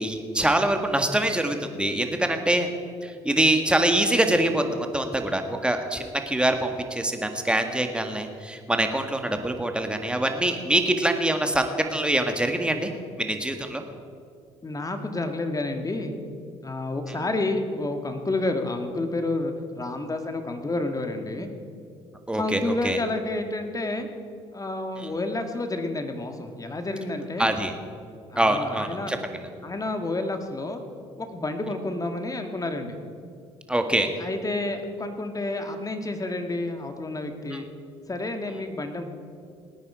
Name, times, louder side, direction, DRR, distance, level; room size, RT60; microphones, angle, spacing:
voice 1, 0.0-2.7 3.0-4.6 4.9-12.9 13.2-13.8 22.3-23.0 27.4-27.7 28.3-29.4 33.7-34.1 37.5-37.6, right 1 dB, 5° right, 5 dB, 1.7 m, -24 dB
voice 2, 14.6-16.1 16.6-21.5 22.3-24.1 24.5-27.6 28.3-29.1 29.6-30.8 31.2-33.0 34.2-37.7 38.1-39.0, left 2 dB, 25° left, 6 dB, 1.7 m, -30 dB
18.5 x 9.6 x 4.9 m, 2.4 s
hypercardioid pair, 55°, 14 cm